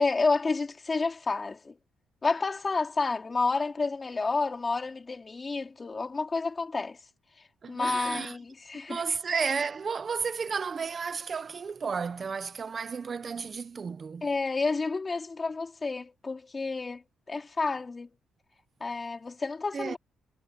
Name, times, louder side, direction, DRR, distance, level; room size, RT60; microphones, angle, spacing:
voice 1, 0.0-1.8 2.2-7.0 7.7-9.0 14.2-18.1 18.8-20.0, left 3 dB, 30° left, 4.0 m, -30 dB
voice 2, 7.6-8.4 8.9-14.3 19.7-20.0, right 5 dB, 40° right, 0.7 m, -32 dB
cardioid pair, 100°, 0 cm